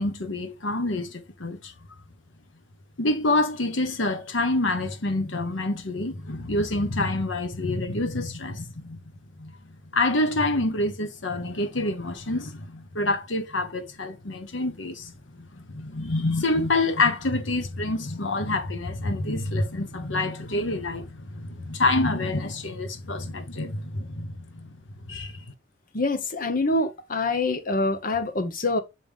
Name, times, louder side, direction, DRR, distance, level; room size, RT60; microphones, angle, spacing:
voice 1, 0.0-1.7 3.0-9.0 9.4-9.5 9.9-24.7 25.0-25.4, left 2 dB, 70° left, 1.1 m, -27 dB
voice 2, 25.9-28.8, left 2 dB, 45° left, 0.9 m, -25 dB
5.9 x 5.3 x 3.5 m
head